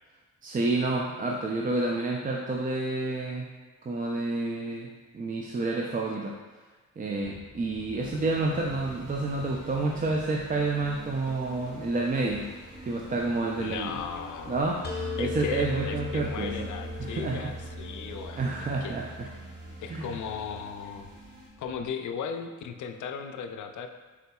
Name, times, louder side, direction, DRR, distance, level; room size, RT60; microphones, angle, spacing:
voice 1, 0.4-3.5 3.8-4.9 5.1-6.3 7.0-12.5 12.8-13.9 14.5-16.7 17.0-17.5 18.4-19.3 19.9-20.2, right 2 dB, 25° right, -1 dB, 0.4 m, -29 dB
Fowl / Bird, 7.2-21.9, left 1 dB, 5° right, 0.8 m, -51 dB
sound 1, 8.0-21.5, equal, 85° right, 1.3 m, -48 dB
voice 2, 13.6-14.6 15.2-19.0 19.8-21.1 21.6-23.9, left 6 dB, 60° left, 6 dB, 0.5 m, -37 dB
sound 2, 14.8-20.6, left 2 dB, 30° left, 0.8 m, -38 dB
4.8 x 3.9 x 2.3 m, 1.3 s
cardioid pair, 65°, 33 cm